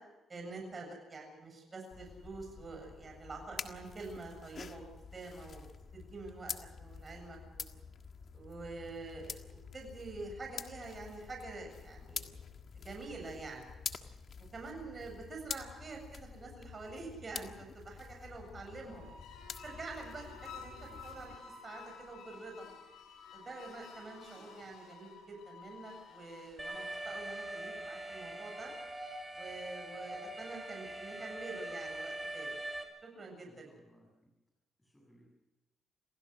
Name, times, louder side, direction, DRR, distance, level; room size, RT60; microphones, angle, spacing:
voice 1, 0.3-4.8 5.1-6.5 6.8-7.7 8.3-12.4 12.7-13.7 14.5-19.1 19.6-21.4 21.6-22.7 23.3-28.7 29.3-32.6 33.0-33.7, right 3 dB, 35° right, 2 dB, 7.6 m, -46 dB
sound 1, 1.9-21.4, left 6 dB, 50° left, 1.6 m, -47 dB
sound 2, 18.7-28.1, left 5 dB, 80° left, 7.5 m, -53 dB
voice 2, 24.4-24.7 33.5-34.3 34.8-35.3, equal, 10° left, -1 dB, 7.3 m, -64 dB
Alarm, 26.6-32.8, right 1 dB, 5° right, 5.7 m, -42 dB
27.5 x 17.0 x 6.5 m, 1.0 s
cardioid pair, 90°, 0 cm